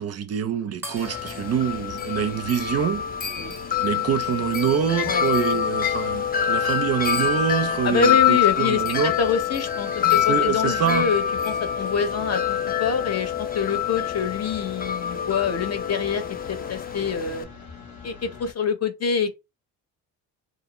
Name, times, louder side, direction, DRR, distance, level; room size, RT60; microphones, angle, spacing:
voice 1, 0.0-3.1 3.8-9.1 10.0-11.1, right 8 dB, 45° right, 0.4 m, -25 dB
sound 1, 0.8-3.6, equal, 5° right, 0.8 m, -43 dB
sound 2, 1.0-18.5, left 5 dB, 70° left, 1.2 m, -43 dB
Wind chime, 1.0-17.4, left 9 dB, 25° left, 0.4 m, -26 dB
voice 2, 7.8-16.2 16.5-17.5 18.0-19.3, left 6 dB, 45° left, 0.8 m, -26 dB
2.5 x 2.4 x 2.9 m
supercardioid pair, 75°, 37 cm